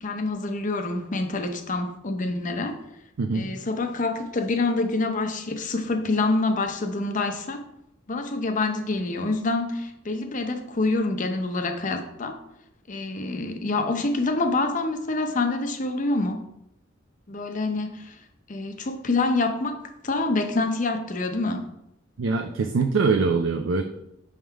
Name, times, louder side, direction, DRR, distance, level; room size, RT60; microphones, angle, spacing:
voice 1, 0.0-2.8 3.3-7.6 8.1-12.4 12.9-16.4 17.3-18.2 18.5-21.7, left 3 dB, 40° left, 6 dB, 0.6 m, -26 dB
voice 2, 3.2-3.5 22.2-23.8, right 4 dB, 75° right, 5 dB, 0.4 m, -23 dB
6.3 x 3.6 x 4.5 m, 0.80 s
head